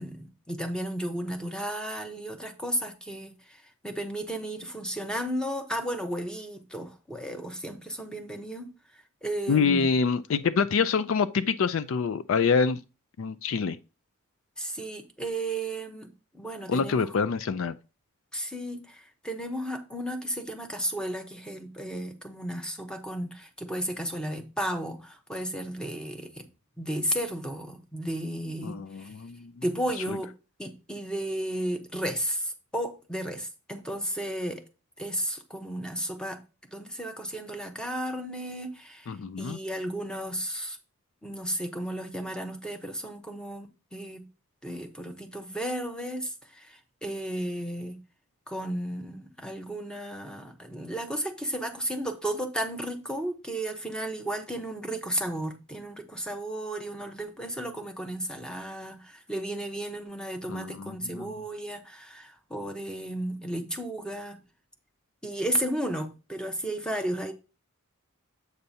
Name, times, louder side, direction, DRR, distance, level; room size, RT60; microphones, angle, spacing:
voice 1, 0.0-9.9 14.6-17.1 18.3-26.5 26.8-29.1 29.6-30.3 30.6-34.6 35.0-36.4 36.7-40.8 41.2-44.3 44.6-48.0 48.5-64.4 65.2-67.3, right 1 dB, 5° left, 0.9 m, -34 dB
voice 2, 9.5-12.8 13.2-13.8 16.7-17.7 28.6-29.5 30.1-30.2 39.1-39.6 60.5-61.3, left 5 dB, 65° left, 0.4 m, -26 dB
8.0 x 6.5 x 2.8 m
head